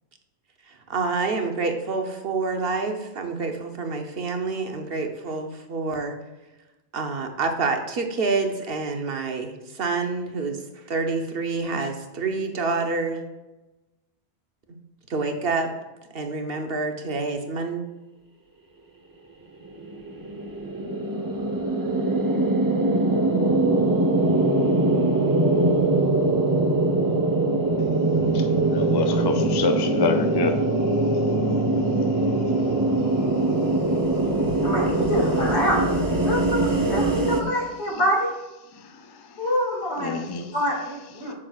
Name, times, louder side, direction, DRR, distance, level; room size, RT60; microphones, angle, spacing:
voice 1, 0.9-6.2 6.9-10.6 10.9-13.2 15.1-15.7 16.1-17.8, right 4 dB, 60° right, 1.0 m, -27 dB
sound 1, 19.6-37.4, right 2 dB, 20° right, 0.7 m, -22 dB
voice 2, 28.7-30.6 39.8-40.5, left 3 dB, 40° left, 0.3 m, -26 dB
voice 3, 34.6-35.8 36.2-38.3 39.4-40.1 40.5-41.3, equal, 80° left, 2.4 m, -25 dB
8.5 x 6.3 x 2.4 m
omnidirectional pair, 1.1 m